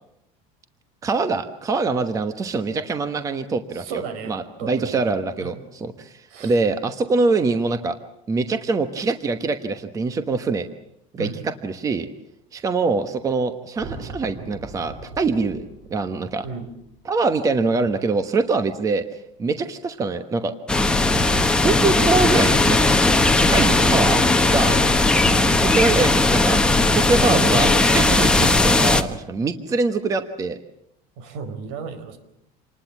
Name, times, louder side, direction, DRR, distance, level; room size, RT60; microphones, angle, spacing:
voice 1, 1.0-4.0 4.3-5.5 5.8-8.0 8.3-10.7 11.1-12.1 12.5-16.4 17.1-20.5 21.6-22.9 23.4-24.8 25.7-26.6 26.9-30.6, right 3 dB, 20° right, 9 dB, 1.2 m, -24 dB
voice 2, 3.7-4.3 4.6-5.0 5.4-5.6 6.3-6.6 11.2-11.4 16.4-16.7 25.3-25.5 27.3-27.9 31.2-32.2, right 4 dB, 75° right, 10 dB, 4.6 m, -33 dB
sound 1, 13.7-18.1, right 2 dB, 50° right, 4.3 m, -40 dB
sound 2, 20.7-29.0, left 2 dB, 5° left, 1.2 m, -17 dB
27.5 x 20.0 x 7.3 m, 0.79 s
cardioid pair, 165°, 18 cm